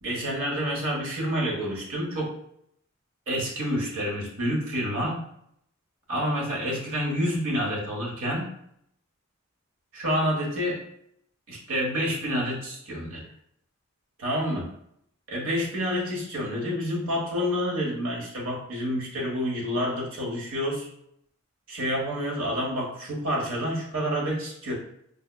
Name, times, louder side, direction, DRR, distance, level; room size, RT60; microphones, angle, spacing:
voice 1, 0.0-2.3 3.3-5.2 6.1-8.5 9.9-10.8 11.5-13.2 14.2-14.7 15.3-20.9 21.7-24.7, equal, 85° right, -2 dB, 1.2 m, -28 dB
5.3 x 2.2 x 2.2 m, 0.71 s
head